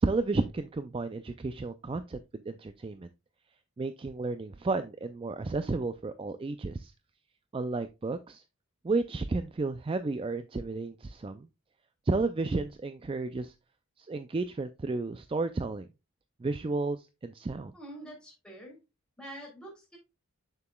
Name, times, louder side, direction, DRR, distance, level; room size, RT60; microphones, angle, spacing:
voice 1, 0.0-3.1 3.8-6.9 7.5-8.4 8.8-11.5 12.1-13.5 14.0-15.9 16.4-17.7, right 3 dB, 25° right, 10 dB, 0.3 m, -32 dB
voice 2, 17.7-18.8 19.2-20.0, right 1 dB, 5° left, -2 dB, 3.0 m, -46 dB
6.8 x 6.8 x 2.2 m, 0.25 s
head